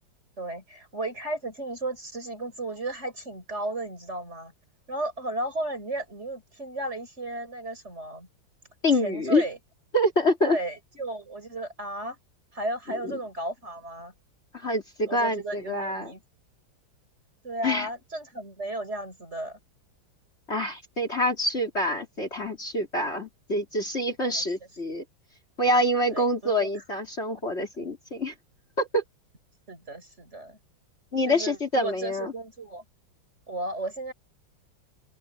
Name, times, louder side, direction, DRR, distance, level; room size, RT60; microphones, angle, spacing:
voice 1, 0.4-4.5 4.9-8.3 9.0-9.6 10.4-12.2 12.5-14.1 15.1-16.2 17.4-19.6 24.3-24.4 26.1-26.7 29.7-30.6 31.2-32.8 33.5-34.1, right 2 dB, 35° right, 5.3 m, -34 dB
voice 2, 8.8-9.4 9.9-10.6 13.0-13.2 14.5-16.1 17.6-17.9 20.5-25.0 25.6-28.3 28.8-29.0 31.1-32.3, left 1 dB, 30° left, 3.5 m, -26 dB
open air
omnidirectional pair, 2.2 m